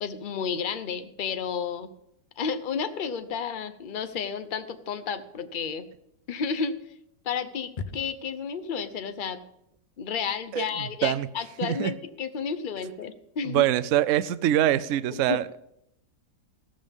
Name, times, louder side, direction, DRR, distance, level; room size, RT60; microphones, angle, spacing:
voice 1, 0.0-1.9 2.4-5.9 6.3-6.8 7.2-9.4 10.0-13.6 15.1-15.4, left 6 dB, 50° left, 10 dB, 0.6 m, -31 dB
voice 2, 10.5-11.3 11.6-11.9 13.4-15.6, right 12 dB, 80° right, 14 dB, 0.6 m, -24 dB
15.0 x 12.5 x 3.6 m, 0.79 s
omnidirectional pair, 1.9 m